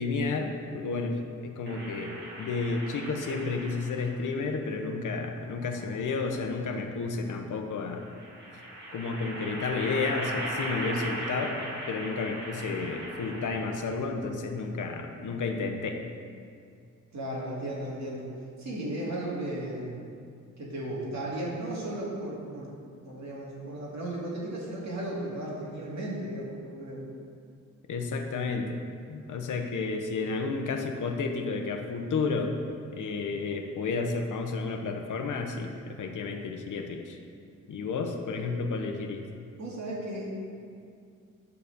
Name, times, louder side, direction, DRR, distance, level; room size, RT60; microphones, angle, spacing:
voice 1, 0.0-8.0 8.9-11.6 11.9-16.0 27.9-28.8 29.1-32.5 32.9-37.2 37.7-39.2, left 4 dB, 85° left, 4 dB, 1.0 m, -31 dB
sound 1, 1.7-4.3 5.4-6.4 8.0-14.0, right 1 dB, 35° right, 2.1 m, -38 dB
voice 2, 17.1-18.3 18.6-19.9 20.6-22.8 23.0-27.0 39.6-40.3, right 1 dB, 65° right, -5 dB, 2.5 m, -35 dB
11.5 x 4.1 x 6.8 m, 2.3 s
wide cardioid pair, 140°, 30 cm